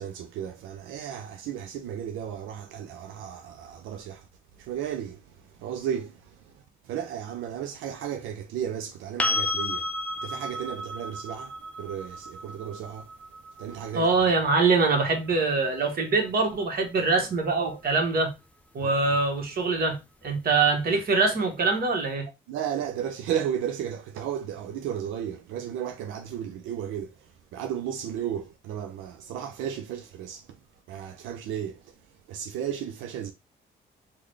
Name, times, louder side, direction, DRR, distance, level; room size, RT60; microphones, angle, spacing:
voice 1, 0.0-4.3 4.6-9.9 10.2-13.1 13.6-14.1 22.5-30.6 30.9-31.9 32.3-33.3, right 9 dB, 85° right, 0.4 m, -34 dB
sound 1, 9.2-17.0 19.8-19.9, left 2 dB, 5° left, 0.4 m, -34 dB
voice 2, 13.9-18.3 18.7-20.0 20.2-22.3, right 3 dB, 50° right, 1.2 m, -24 dB
3.7 x 2.2 x 3.2 m
cardioid pair, 90°, 20 cm